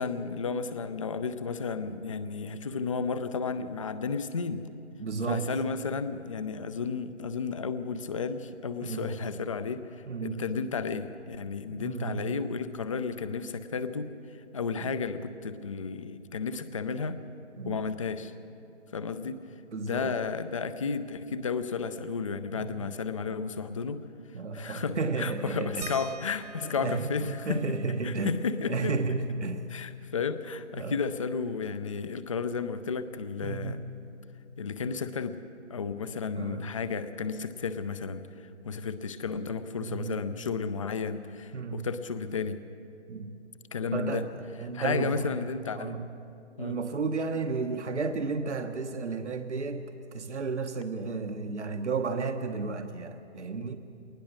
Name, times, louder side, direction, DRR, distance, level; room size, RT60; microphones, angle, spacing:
voice 1, 0.0-4.6 5.3-14.1 14.5-17.2 17.7-18.3 18.9-19.4 19.8-24.0 24.5-27.6 28.0-28.9 29.7-33.8 34.6-35.4 35.7-42.6 43.7-44.2 44.7-46.0 46.6-46.8, left 5 dB, 30° left, 12 dB, 0.6 m, -33 dB
voice 2, 5.0-5.5 8.8-9.2 10.1-10.4 11.7-12.3 14.7-14.9 17.6-17.8 19.7-20.1 22.5-23.0 24.3-25.9 26.6-28.4 28.7-29.7 30.7-31.0 33.4-33.9 36.3-36.7 39.8-40.2 41.5-41.9 43.1-43.4 43.9-45.4 45.7-46.1 46.6-53.8, right 4 dB, 75° right, 6 dB, 1.2 m, -33 dB
sound 1, 25.8-30.9 31.3-31.4 31.7-33.5 34.7-34.8 35.6-35.7, right 4 dB, 35° right, 0.4 m, -50 dB
21.5 x 19.5 x 6.4 m, 2.7 s
figure-of-eight pair, 150°, 35 cm